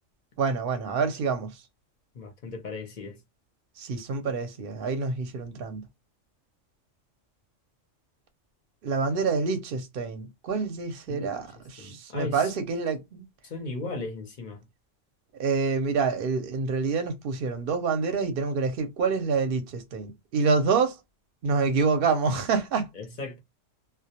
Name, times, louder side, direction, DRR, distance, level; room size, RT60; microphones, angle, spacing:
voice 1, 0.4-1.5 3.8-5.8 8.8-11.5 11.7-13.2 15.3-21.0 21.4-22.9, right 4 dB, 55° right, 0.7 m, -27 dB
voice 2, 2.1-3.2 11.1-11.3 11.8-12.5 13.4-14.6 22.9-23.4, left 3 dB, 50° left, 0.6 m, -36 dB
2.2 x 2.1 x 2.7 m
omnidirectional pair, 1.3 m